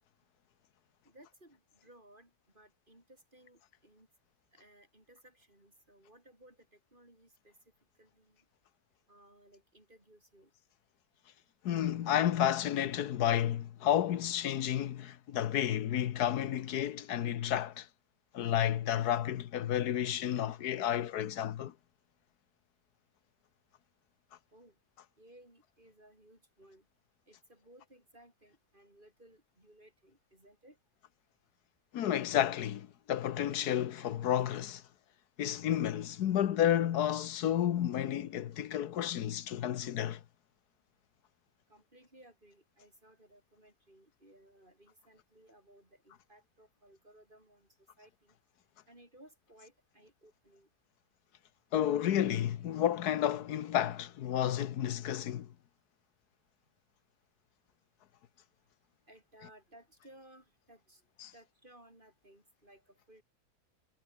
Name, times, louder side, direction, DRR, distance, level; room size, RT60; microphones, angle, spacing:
voice 1, 1.0-4.1 4.5-7.5 8.0-8.5 9.1-10.5 24.5-24.8 25.2-26.9 27.3-30.8 41.7-48.4 48.9-50.7 59.1-61.0 61.3-63.2, right 1 dB, 30° right, 7.4 m, -60 dB
voice 2, 11.6-17.9 18.3-21.7 31.9-34.8 35.4-40.2 51.7-55.5 61.2-61.3, left 11 dB, 85° left, 1.5 m, -31 dB
omnidirectional pair, 1.6 m